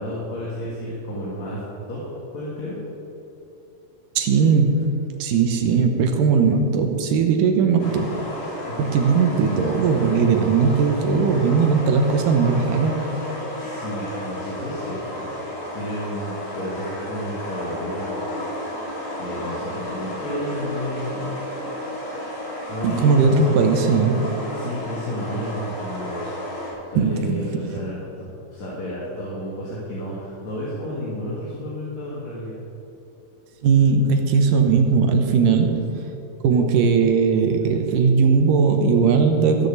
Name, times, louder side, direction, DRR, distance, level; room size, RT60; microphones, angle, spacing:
voice 1, 0.0-1.6 1.9-2.0 2.3-2.8 8.7-8.8 13.6-15.2 15.7-18.3 19.2-21.3 22.7-23.3 24.5-26.2 26.8-32.6, equal, 55° left, -6 dB, 3.1 m, -31 dB
voice 2, 4.2-8.2 8.8-13.0 22.8-24.4 27.0-27.7 33.6-35.9 36.4-39.7, right 5 dB, 75° right, 5 dB, 2.4 m, -19 dB
sound 1, 7.8-26.7, left 1 dB, 80° left, 5.2 m, -32 dB
14.5 x 6.8 x 8.1 m, 2.9 s
omnidirectional pair, 4.0 m